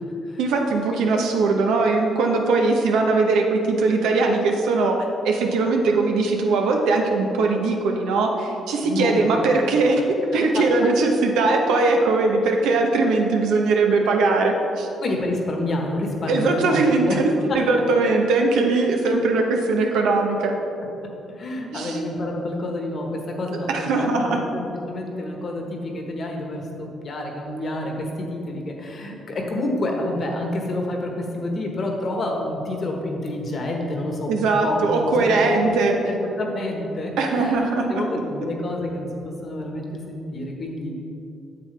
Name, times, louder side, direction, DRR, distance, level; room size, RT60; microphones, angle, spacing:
voice 1, 0.4-5.0 5.2-10.0 10.3-14.9 16.3-20.5 21.7-22.0 23.7-24.4 34.3-35.9 37.2-38.0, right 3 dB, 90° right, 2 dB, 0.9 m, -20 dB
voice 2, 8.8-9.8 15.0-17.2 21.4-34.3 34.6-37.6 37.9-40.9, left 1 dB, 50° left, 1 dB, 1.3 m, -28 dB
7.9 x 7.5 x 3.4 m, 2.8 s
cardioid pair, 90°, 0 cm